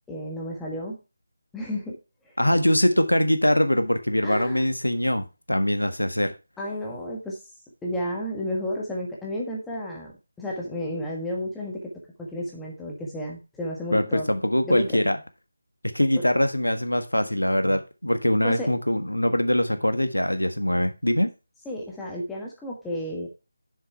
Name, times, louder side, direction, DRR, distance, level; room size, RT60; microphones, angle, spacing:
voice 1, 0.1-1.0 1.5-2.0 2.2-2.3 4.2-4.6 6.6-7.4 7.8-10.1 10.4-11.9 12.2-14.3 14.7-15.0 16.2-16.3 18.4-18.7 21.6-23.3, left 1 dB, 5° left, -2 dB, 1.4 m, -32 dB
voice 2, 2.4-6.3 13.9-15.2 15.9-21.3, left 1 dB, 80° left, 9 dB, 1.5 m, -23 dB
7.0 x 6.9 x 4.4 m, 0.28 s
figure-of-eight pair, 160°, 0 cm